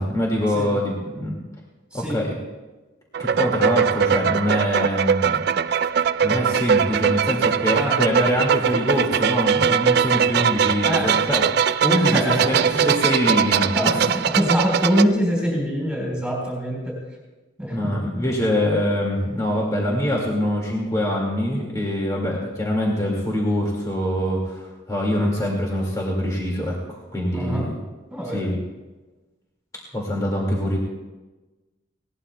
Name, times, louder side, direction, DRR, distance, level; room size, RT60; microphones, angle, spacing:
voice 1, 0.0-1.3 1.9-2.3 3.2-5.4 6.2-11.4 11.8-13.9 17.7-27.7 28.3-28.6 29.9-30.8, left 1 dB, 15° left, -2 dB, 2.0 m, -24 dB
sound 1, 3.1-15.1, right 7 dB, 50° right, 0.3 m, -21 dB
voice 2, 10.8-11.2 11.9-12.8 13.8-17.0 17.6-17.9 27.3-27.6 28.1-28.4, equal, 5° right, -3 dB, 4.0 m, -24 dB
20.0 x 17.5 x 2.2 m, 1.2 s
head